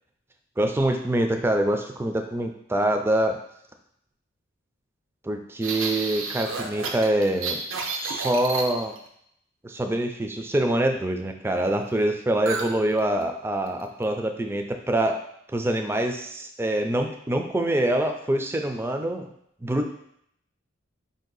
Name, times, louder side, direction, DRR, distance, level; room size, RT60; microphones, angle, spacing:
voice 1, 0.6-3.4 5.2-7.6 7.9-8.9 9.6-15.2 15.5-19.3 19.6-19.9, right 1 dB, 10° right, 5 dB, 0.4 m, -25 dB
sound 1, 5.6-9.1 12.5-12.7 13.0-13.2 13.7-14.0, right 4 dB, 90° right, 0.6 m, -31 dB
5.0 x 2.7 x 3.9 m, 0.72 s
head